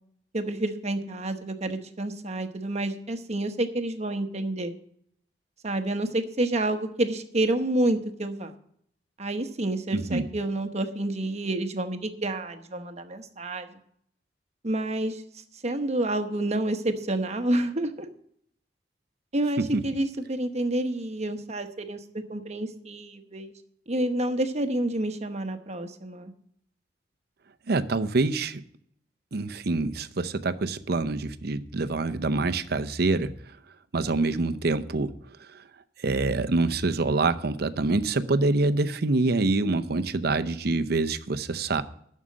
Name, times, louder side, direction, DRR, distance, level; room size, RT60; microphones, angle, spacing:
voice 1, 0.3-4.7 5.6-8.5 9.2-13.7 14.6-15.2 15.6-18.1 19.3-23.5 23.9-26.3, right 1 dB, 40° right, 1.0 m, -29 dB
voice 2, 9.9-10.3 19.6-19.8 27.7-28.6 29.3-33.3 33.9-35.1 35.5-35.6 36.0-41.8, right 3 dB, 60° right, 0.7 m, -26 dB
11.5 x 6.5 x 7.4 m
head